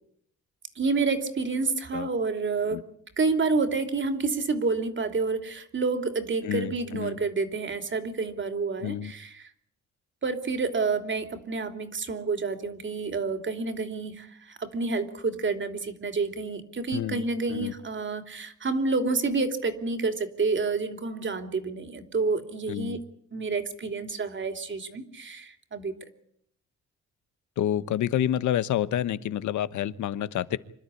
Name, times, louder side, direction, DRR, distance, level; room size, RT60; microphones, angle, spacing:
voice 1, 0.7-2.8 3.2-9.5 10.2-23.0 23.3-25.9, right 4 dB, 40° right, 7 dB, 3.2 m, -29 dB
voice 2, 6.4-7.2 8.8-9.1 16.9-17.2 17.5-17.7 22.7-23.0 27.6-30.6, left 11 dB, 75° left, 15 dB, 1.2 m, -28 dB
26.0 x 12.5 x 9.9 m, 0.67 s
cardioid pair, 90°, 30 cm